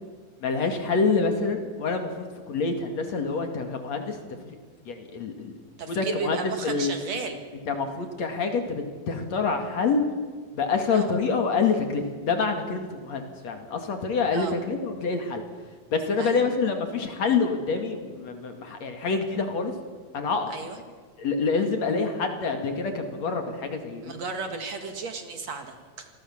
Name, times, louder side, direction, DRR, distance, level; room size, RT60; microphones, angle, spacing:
voice 1, 0.4-4.6 4.9-5.5 5.9-6.9 7.7-10.0 10.5-15.4 15.9-19.7 20.1-20.5 21.2-24.1, left 4 dB, 50° left, 6 dB, 3.2 m, -27 dB
voice 2, 5.8-7.4 10.9-11.1 14.3-14.5 16.2-16.4 20.5-20.8 24.0-26.1, right 4 dB, 55° right, 6 dB, 2.8 m, -34 dB
27.5 x 20.0 x 7.3 m, 1.5 s
omnidirectional pair, 4.1 m